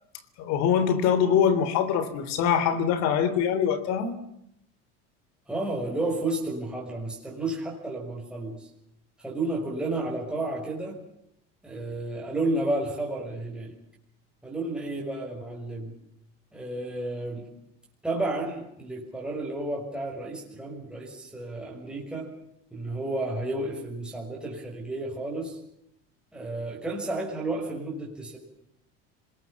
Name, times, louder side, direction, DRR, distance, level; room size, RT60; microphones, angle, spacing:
voice 1, 0.4-4.2, left 8 dB, 65° left, 12 dB, 3.5 m, -23 dB
voice 2, 5.5-8.7 9.2-11.0 11.6-13.7 14.4-15.9 16.5-17.4 18.0-22.3 22.7-25.6 26.3-28.4, right 2 dB, 5° right, -3 dB, 6.1 m, -32 dB
26.0 x 20.5 x 7.1 m, 0.75 s
cardioid pair, 130°, 30 cm